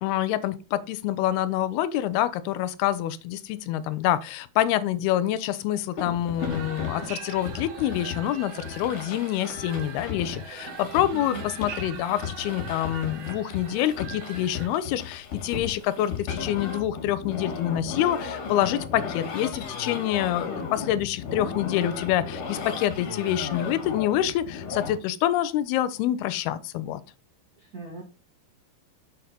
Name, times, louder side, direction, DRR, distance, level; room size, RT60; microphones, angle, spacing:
voice 1, 0.0-27.0, left 12 dB, 85° left, 2.7 m, -26 dB
sound 1, 6.0-24.9, left 6 dB, 55° left, 3.7 m, -35 dB
sound 2, 6.4-14.7, right 6 dB, 80° right, 4.0 m, -41 dB
voice 2, 11.1-11.5 27.6-28.0, right 4 dB, 35° right, 1.7 m, -40 dB
8.0 x 6.6 x 4.1 m
omnidirectional pair, 4.4 m